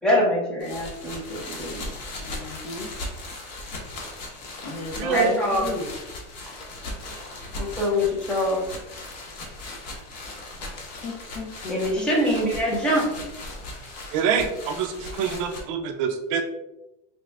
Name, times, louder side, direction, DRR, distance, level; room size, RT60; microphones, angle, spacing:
voice 1, 0.0-1.9 5.1-5.7 7.6-8.6 11.7-13.1, left 1 dB, 5° left, -4 dB, 0.7 m, -24 dB
Forever Plastic, 0.6-15.6, left 2 dB, 80° left, 1.1 m, -38 dB
voice 2, 2.2-2.9 4.6-5.9 11.0-12.3 12.7-12.9, left 2 dB, 60° left, 1 dB, 1.0 m, -34 dB
voice 3, 5.0-5.3 14.1-16.4, right 7 dB, 50° right, 6 dB, 0.4 m, -25 dB
4.0 x 2.4 x 3.3 m, 0.93 s
supercardioid pair, 170°, 21 cm